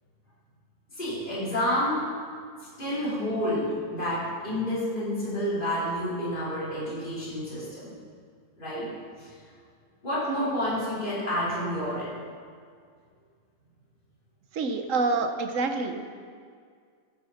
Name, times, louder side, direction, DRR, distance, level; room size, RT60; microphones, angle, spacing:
voice 1, 0.9-2.1 2.8-7.9 8.6-8.9 9.2-9.3 10.0-12.2, equal, 30° left, -9 dB, 4.1 m, -29 dB
voice 2, 14.5-16.0, right 3 dB, 60° right, 6 dB, 1.2 m, -27 dB
15.5 x 9.6 x 4.3 m, 2.1 s
omnidirectional pair, 1.7 m